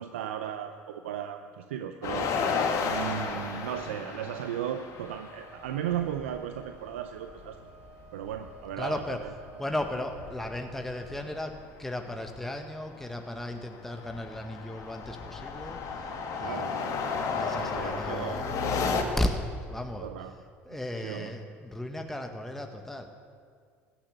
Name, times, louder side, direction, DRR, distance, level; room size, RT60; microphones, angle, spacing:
voice 1, 0.0-2.3 2.8-7.6 8.1-9.3 16.4-17.0 17.5-18.4 20.0-20.4 20.7-20.8 21.0-21.3, right 10 dB, 85° right, 8 dB, 0.5 m, -36 dB
sound 1, 2.0-6.4 6.7-6.8 7.1-9.4 9.7-11.6 12.1-12.4 12.8-19.0, left 5 dB, 55° left, 1.8 m, -33 dB
Wind instrument woodwind instrument, 4.9-11.6, right 3 dB, 65° right, 1.6 m, -54 dB
voice 2, 8.8-9.2 9.6-11.5 11.8-16.1 16.4-16.7 17.3-18.5 19.2-19.4 19.7-20.1 20.6-23.1, left 1 dB, 5° left, 4 dB, 1.3 m, -35 dB
15.5 x 10.5 x 6.7 m, 2.1 s
hypercardioid pair, 70°, 7 cm